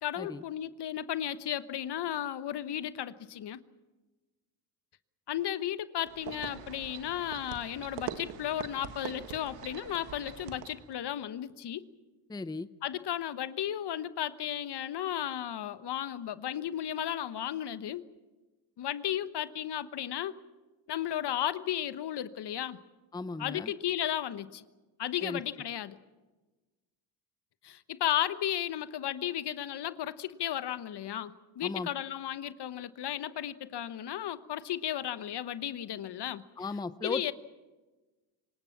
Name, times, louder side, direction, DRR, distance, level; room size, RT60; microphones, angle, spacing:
voice 1, 0.0-3.6 5.3-11.8 12.8-18.0 18.8-20.3 20.9-22.8 23.4-24.6 25.0-26.0 27.6-36.4 37.0-37.3, left 11 dB, 55° left, 14 dB, 1.2 m, -34 dB
sound 1, 6.1-10.9, right 10 dB, 85° right, 1.6 m, -43 dB
voice 2, 12.3-12.7 23.1-23.7 25.2-25.4 31.6-31.9 36.6-37.3, left 3 dB, 10° left, 14 dB, 0.7 m, -36 dB
25.0 x 19.5 x 7.2 m, 1.2 s
supercardioid pair, 65°, 48 cm